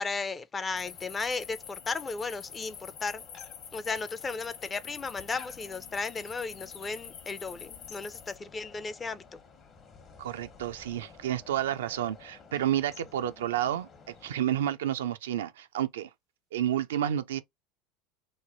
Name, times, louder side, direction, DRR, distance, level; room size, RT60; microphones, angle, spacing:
voice 1, 0.0-3.2 3.7-9.4, left 4 dB, 25° left, 0.5 m, -35 dB
sound 1, 0.7-14.5, left 5 dB, 40° left, 1.0 m, -53 dB
sound 2, 0.8-8.4, left 8 dB, 70° left, 0.7 m, -47 dB
voice 2, 10.2-16.1 16.5-17.4, right 11 dB, 80° right, 0.3 m, -30 dB
3.1 x 2.2 x 3.8 m
hypercardioid pair, 85°, 0 cm